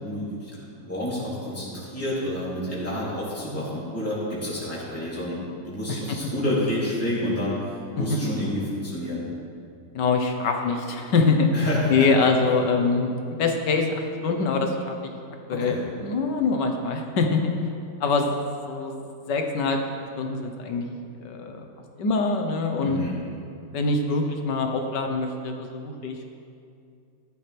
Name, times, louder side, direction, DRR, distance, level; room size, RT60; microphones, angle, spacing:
voice 1, 0.0-5.4 5.6-9.2 11.5-12.1 15.5-15.9 22.8-23.2, left 1 dB, 10° left, -9 dB, 3.2 m, -29 dB
voice 2, 10.0-13.1 13.4-13.9 14.2-14.9 15.5-17.4 18.0-19.0 19.3-20.9 21.2-21.7 22.0-23.0 23.7-26.2, left 4 dB, 85° left, 4 dB, 1.8 m, -24 dB
15.0 x 12.0 x 3.5 m, 2.4 s
omnidirectional pair, 1.8 m